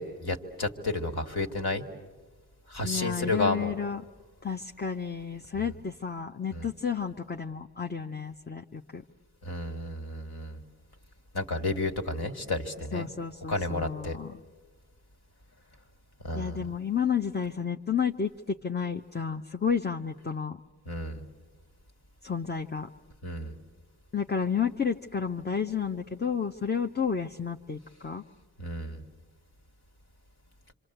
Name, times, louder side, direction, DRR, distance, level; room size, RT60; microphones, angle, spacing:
voice 1, 0.0-1.9 2.7-3.7 5.6-5.7 6.5-6.7 9.4-10.6 11.3-13.1 13.5-14.2 16.2-16.6 20.9-21.2 23.2-23.5 28.6-29.0, left 2 dB, 60° left, 5 dB, 2.2 m, -31 dB
voice 2, 2.8-4.1 4.4-9.0 12.9-14.4 16.3-20.6 22.2-22.9 24.1-28.2, left 6 dB, 25° left, 4 dB, 0.8 m, -31 dB
26.5 x 26.0 x 8.0 m, 1.3 s
cardioid pair, 55°, 44 cm